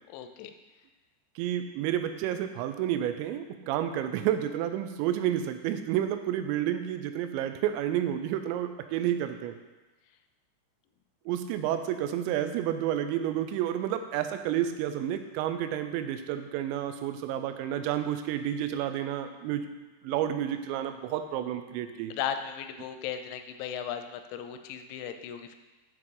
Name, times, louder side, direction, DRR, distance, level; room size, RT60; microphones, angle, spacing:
voice 1, 0.1-0.5 22.1-25.6, left 8 dB, 90° left, 7 dB, 2.9 m, -36 dB
voice 2, 1.4-9.6 11.3-19.7 20.0-22.1, right 11 dB, 85° right, 9 dB, 2.8 m, -30 dB
8.0 x 4.6 x 3.7 m, 1.2 s
omnidirectional pair, 5.1 m